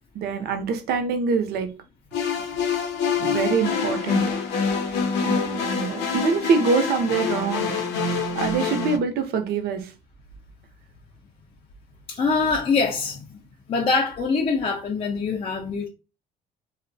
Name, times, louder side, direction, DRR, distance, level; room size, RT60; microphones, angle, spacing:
voice 1, 0.1-1.7 3.2-4.2 5.2-7.7 8.3-9.9 12.1-12.3, right 5 dB, 70° right, 0.5 m, -25 dB
sound 1, 2.1-9.0, left 5 dB, 90° left, 0.6 m, -26 dB
voice 2, 12.1-13.4 13.7-15.9, left 4 dB, 35° left, 0.4 m, -24 dB
2.5 x 2.0 x 2.6 m
cardioid pair, 110°, 17 cm